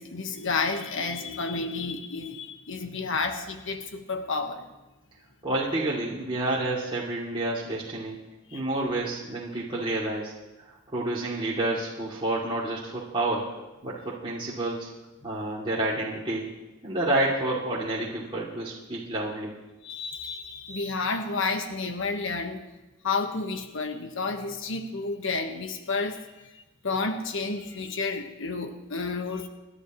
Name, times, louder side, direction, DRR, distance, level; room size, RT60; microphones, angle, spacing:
voice 1, 0.0-4.6 8.5-8.6 19.8-22.6 23.0-26.2 26.5-29.5, left 4 dB, 65° left, 5 dB, 1.3 m, -31 dB
voice 2, 5.4-8.2 8.5-10.3 10.7-13.5 13.8-14.9 15.2-16.5 16.8-19.5, right 2 dB, 25° right, -7 dB, 2.5 m, -29 dB
28.0 x 11.5 x 3.1 m, 1.1 s
head